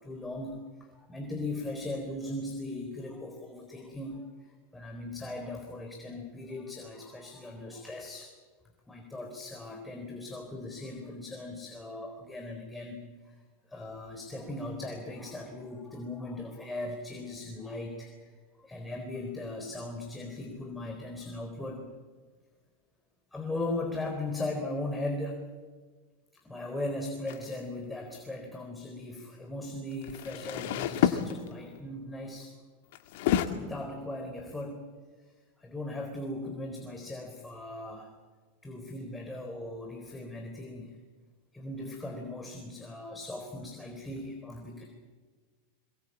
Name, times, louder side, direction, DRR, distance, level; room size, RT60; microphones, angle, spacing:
voice 1, 0.0-8.3 8.9-13.4 13.7-21.9 23.3-25.5 26.4-32.5 33.4-34.9 35.2-35.3 35.6-38.1 38.6-41.0 41.5-44.9, left 2 dB, 10° left, 2 dB, 4.0 m, -38 dB
sound 1, 27.3-27.5 29.9-31.8 32.9-33.5, left 11 dB, 65° left, 1.8 m, -29 dB
22.5 x 20.5 x 8.5 m, 1.4 s
hypercardioid pair, 95°, 0 cm